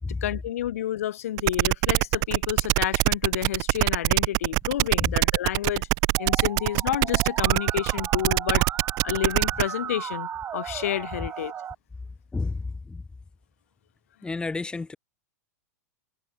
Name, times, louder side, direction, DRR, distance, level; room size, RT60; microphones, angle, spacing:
voice 1, 0.2-5.9 6.2-8.7 9.0-11.5, left 12 dB, 65° left, 4.2 m, -30 dB
sound 1, 1.4-9.6, right 30 dB, 45° right, 2.2 m, -23 dB
Musical instrument, 6.2-11.7, right 9 dB, 25° right, 3.7 m, -36 dB
voice 2, 12.3-13.0 14.2-15.0, left 3 dB, 10° left, 3.2 m, -31 dB
figure-of-eight pair, 95°, 8 cm